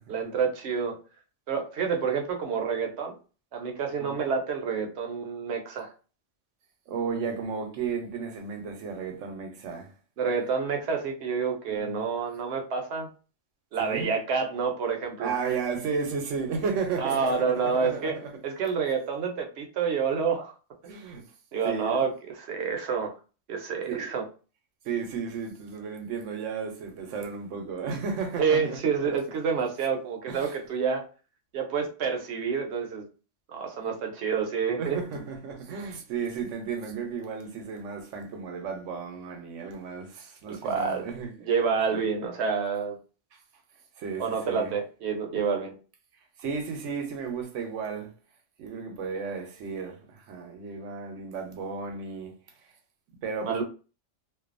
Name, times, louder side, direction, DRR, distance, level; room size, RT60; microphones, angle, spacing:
voice 1, 0.1-1.0 1.5-3.1 3.5-5.9 10.2-13.1 13.7-15.3 17.0-18.1 18.4-20.5 20.8-21.0 21.5-22.1 22.4-23.1 23.5-24.2 28.4-31.0 31.5-33.1 33.5-35.0 40.5-41.1 41.4-43.0 44.2-45.8 53.5-53.6, right 6 dB, 65° right, 0.9 m, -28 dB
voice 2, 6.9-9.9 11.7-12.0 13.8-14.1 15.2-18.3 20.8-21.2 21.6-22.0 23.9-24.1 24.8-28.8 29.0-29.1 30.3-30.5 34.8-41.3 41.9-42.0 44.0-44.7 46.4-48.1 48.6-52.3 53.2-53.6, right 5 dB, 90° right, 1.0 m, -34 dB
2.5 x 2.3 x 2.4 m
omnidirectional pair, 1.3 m